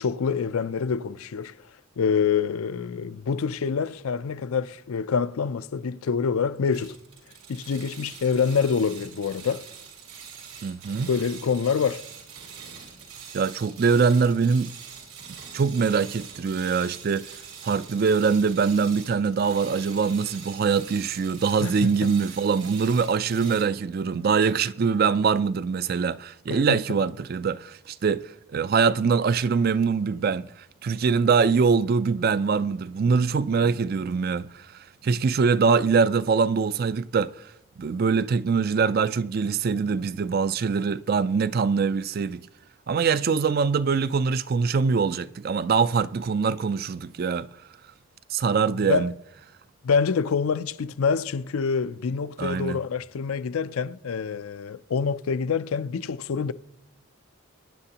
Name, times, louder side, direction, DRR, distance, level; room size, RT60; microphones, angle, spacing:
voice 1, 0.0-1.5 2.0-7.0 7.5-9.7 11.1-12.0 21.6-21.9 26.5-26.8 48.7-49.1 49.8-56.5, left 6 dB, 80° left, 0.4 m, -26 dB
sound 1, 6.7-23.6, right 6 dB, 85° right, 3.6 m, -44 dB
voice 2, 10.6-11.1 13.3-14.7 15.5-17.3 17.6-34.7 35.0-37.3 37.8-42.4 42.9-47.5 48.3-49.1 52.4-52.8, right 5 dB, 45° right, 0.3 m, -23 dB
22.5 x 9.9 x 2.9 m
head